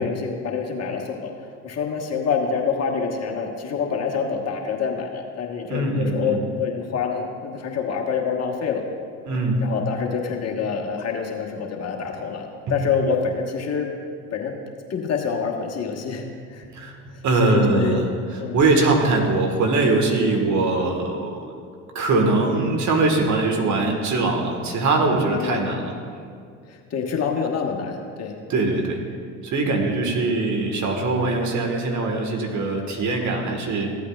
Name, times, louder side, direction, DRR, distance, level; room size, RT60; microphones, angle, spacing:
voice 1, 0.0-1.3 1.6-8.8 9.6-13.9 14.3-14.5 14.9-16.2 16.5-16.6 17.4-18.0 18.4-18.6 25.2-25.8 26.7-28.4 29.7-29.9, left 6 dB, 40° left, 1 dB, 1.4 m, -26 dB
voice 2, 5.7-6.4 9.3-9.7 12.7-12.8 16.7-18.0 18.3-21.5 21.9-25.9 28.5-29.0 29.4-33.9, right 3 dB, 50° right, 2 dB, 1.7 m, -22 dB
15.0 x 8.4 x 2.4 m, 2.2 s
hypercardioid pair, 70°, 37 cm